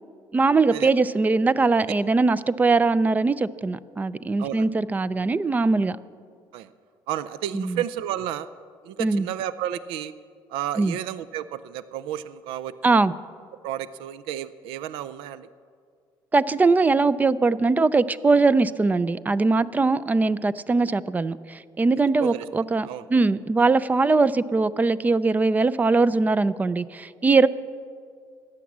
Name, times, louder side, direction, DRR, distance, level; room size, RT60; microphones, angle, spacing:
voice 1, 0.3-6.0 7.5-7.8 9.0-9.3 10.8-11.0 12.8-13.1 16.3-27.5, right 3 dB, 20° right, 17 dB, 0.4 m, -21 dB
voice 2, 7.1-8.5 8.8-10.1 10.5-13.1 13.6-15.5 22.2-22.5 22.8-23.0, right 11 dB, 90° right, 15 dB, 0.5 m, -32 dB
14.5 x 10.0 x 7.2 m, 2.2 s
cardioid pair, 110°, 9 cm